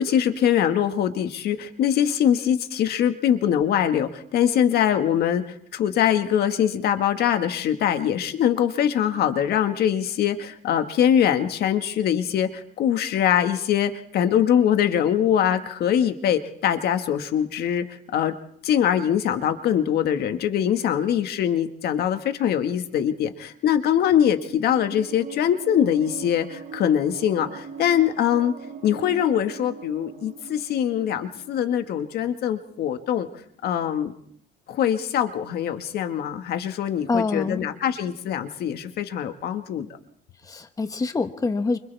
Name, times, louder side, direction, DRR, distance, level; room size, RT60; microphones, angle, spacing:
voice 1, 0.0-5.4 5.7-17.9 18.1-18.4 18.6-28.5 28.8-33.3 33.6-34.1 34.7-39.9, left 9 dB, 70° left, 7 dB, 1.8 m, -23 dB
sound 1, 24.7-32.8, right 5 dB, 60° right, 7.0 m, -40 dB
voice 2, 37.1-37.7 40.4-41.8, left 3 dB, 20° left, 8 dB, 1.3 m, -25 dB
29.0 x 26.0 x 3.6 m, 0.65 s
cardioid pair, 110°, 17 cm